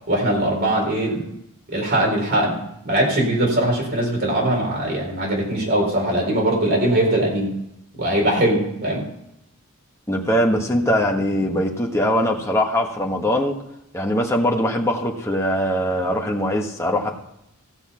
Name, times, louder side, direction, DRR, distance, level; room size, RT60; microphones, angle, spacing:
voice 1, 0.1-1.2 1.7-2.6 2.8-7.5 8.0-9.0, right 1 dB, 50° right, -1 dB, 4.3 m, -21 dB
voice 2, 10.1-13.6 13.9-17.1, equal, 15° left, 1 dB, 1.5 m, -21 dB
15.5 x 7.1 x 5.6 m, 0.81 s
head